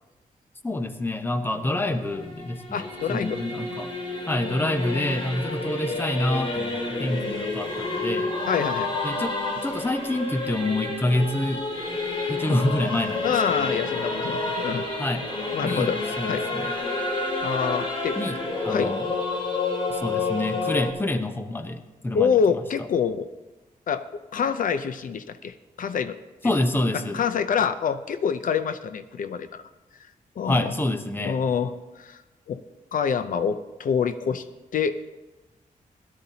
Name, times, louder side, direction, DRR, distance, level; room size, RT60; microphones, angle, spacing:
voice 1, 0.6-3.9 4.3-8.4 9.0-9.3 9.6-11.6 12.3-13.3 13.6-13.8 15.0-15.3 15.6-16.7 18.2-18.4 18.6-19.1 19.9-22.6 26.4-27.2 30.5-31.4, left 1 dB, 15° left, 7 dB, 0.8 m, -27 dB
Singing / Musical instrument, 1.5-20.9, left 3 dB, 40° left, 2.3 m, -29 dB
voice 2, 2.7-3.4 8.5-8.9 12.5-12.6 13.2-14.9 15.5-16.5 17.4-18.2 18.7-18.9 22.1-23.3 23.9-24.0 24.3-26.2 27.1-29.6 30.4-30.7 31.2-32.2 32.5-32.6 32.9-34.4 34.7-35.0, left 7 dB, 70° left, 10 dB, 0.5 m, -26 dB
17.0 x 11.5 x 2.8 m, 1.1 s
wide cardioid pair, 125°, 15 cm